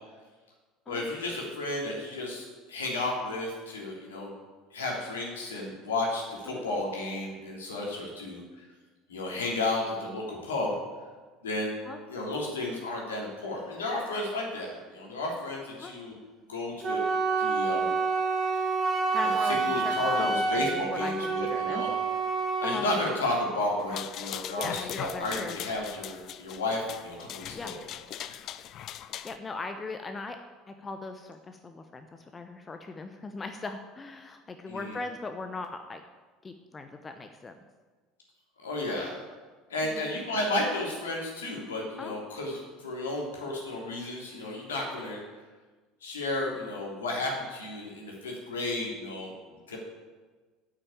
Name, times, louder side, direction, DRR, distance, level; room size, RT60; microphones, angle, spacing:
voice 1, 0.9-4.3 4.7-8.6 9.1-10.8 11.4-11.7 12.1-16.2 16.5-17.0 17.4-17.9 19.2-21.9 22.6-27.8 28.3-28.4 34.7-35.0 38.6-39.2 39.7-45.2 46.0-49.3 49.7-49.8, left 2 dB, 75° left, -2 dB, 3.2 m, -33 dB
Wind instrument woodwind instrument, 16.8-22.9, right 4 dB, 30° right, 1.8 m, -28 dB
voice 2, 19.1-20.7 21.0-21.9 22.6-22.9 24.6-25.6 27.5-27.7 29.2-30.4 30.7-36.0 36.4-37.5 39.9-40.1 42.0-42.1, left 3 dB, 20° left, 7 dB, 0.9 m, -39 dB
sound 1, 23.8-29.4, left 11 dB, 45° left, 0.5 m, -40 dB
8.9 x 8.9 x 8.5 m, 1.4 s
figure-of-eight pair, 65°, 0 cm